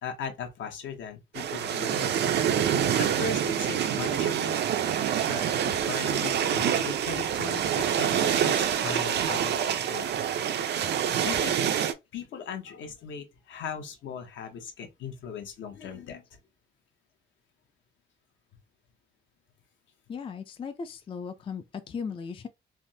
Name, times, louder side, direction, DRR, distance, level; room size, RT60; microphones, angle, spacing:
voice 1, 0.0-2.2 3.0-4.7 5.2-10.2 11.2-11.6 12.1-16.2, left 6 dB, 70° left, 0.8 m, -38 dB
sound 1, 1.3-11.9, right 9 dB, 60° right, 0.4 m, -26 dB
voice 2, 20.1-22.5, left 6 dB, 25° left, 0.4 m, -37 dB
3.3 x 2.0 x 2.7 m
cardioid pair, 90°, 20 cm